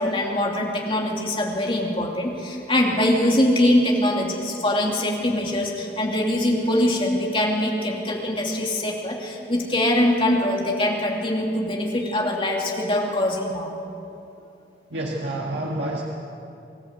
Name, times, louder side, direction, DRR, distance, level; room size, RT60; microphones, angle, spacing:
voice 1, 0.0-13.7, left 1 dB, 30° left, -1 dB, 2.8 m, -23 dB
voice 2, 14.9-16.0, right 1 dB, 80° right, -3 dB, 1.9 m, -28 dB
24.5 x 13.5 x 8.1 m, 2.8 s
head